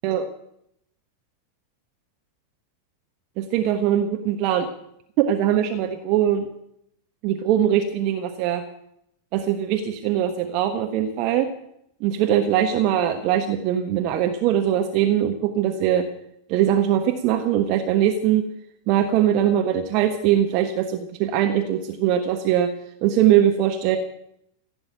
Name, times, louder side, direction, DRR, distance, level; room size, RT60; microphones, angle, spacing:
voice 1, 3.4-4.7 5.3-6.5 7.2-8.6 9.3-11.5 12.0-16.1 16.5-18.4 18.9-22.7 23.0-24.0, right 10 dB, 40° right, 5 dB, 1.3 m, -21 dB
16.0 x 8.7 x 9.0 m, 0.77 s
figure-of-eight pair, 90°, 0 cm